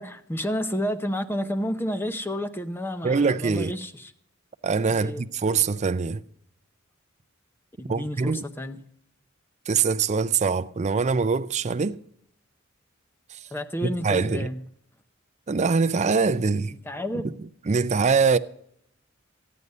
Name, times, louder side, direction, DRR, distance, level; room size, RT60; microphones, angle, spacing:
voice 1, 0.0-4.1 4.9-5.2 7.8-8.8 13.5-14.6 16.8-17.3, equal, 10° left, 0.7 m, -30 dB
voice 2, 3.0-3.7 4.6-6.2 7.9-8.4 9.7-12.0 13.8-14.5 15.5-16.8 17.7-18.4, right 5 dB, 35° right, 0.4 m, -23 dB
14.0 x 9.5 x 5.4 m
head